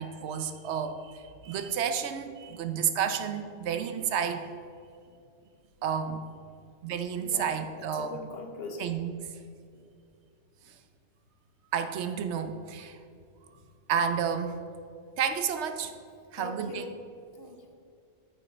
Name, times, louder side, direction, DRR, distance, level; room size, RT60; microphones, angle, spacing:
voice 1, 0.0-4.5 5.8-6.3 6.8-8.1 8.8-9.2 11.7-13.0 13.9-14.6 15.2-15.9 16.3-16.9, right 7 dB, 70° right, 9 dB, 0.8 m, -31 dB
voice 2, 7.2-8.9 9.7-9.8 16.3-17.0 17.3-17.7, left 3 dB, 60° left, 3 dB, 0.9 m, -42 dB
8.6 x 5.4 x 4.3 m, 2.4 s
omnidirectional pair, 1.3 m